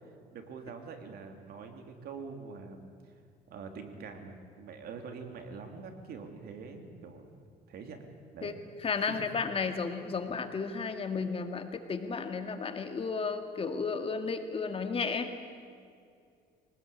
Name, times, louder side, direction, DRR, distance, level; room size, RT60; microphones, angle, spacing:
voice 1, 0.3-2.9 3.5-7.3 7.7-8.0 8.3-8.6 9.1-9.3, right 5 dB, 65° right, 5 dB, 3.2 m, -44 dB
voice 2, 8.8-15.3, left 5 dB, 35° left, 7 dB, 2.1 m, -33 dB
24.5 x 19.5 x 8.7 m, 2.2 s
cardioid pair, 110°, 17 cm